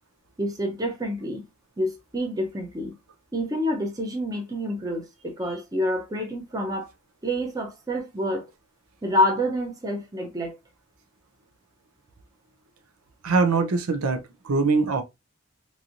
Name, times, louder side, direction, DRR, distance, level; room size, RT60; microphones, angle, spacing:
voice 1, 0.4-1.4 1.8-2.9 3.3-6.9 7.2-8.4 9.0-10.6, equal, 15° right, 0.6 m, -27 dB
voice 2, 13.2-15.0, right 4 dB, 90° right, 0.6 m, -23 dB
3.0 x 2.6 x 2.4 m
head